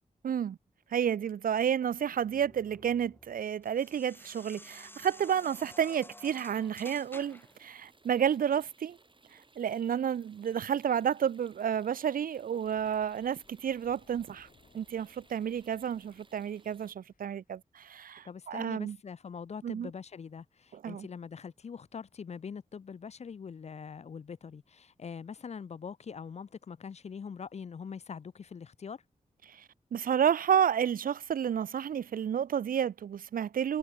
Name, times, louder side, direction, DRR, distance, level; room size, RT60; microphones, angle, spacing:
voice 1, 0.2-0.6 0.9-9.0 9.3-14.5 14.7-19.0 19.6-19.9 20.7-21.1 29.5-33.8, right 8 dB, 80° right, 0.5 m, -31 dB
sound 1, 1.7-7.6, left 1 dB, 15° left, 4.2 m, -52 dB
sound 2, 6.2-16.9, right 3 dB, 35° right, 3.9 m, -63 dB
Thunder, 12.6-17.5, left 5 dB, 70° left, 4.1 m, -65 dB
voice 2, 18.2-29.0, left 6 dB, 50° left, 0.5 m, -43 dB
wide cardioid pair, 80°, 14 cm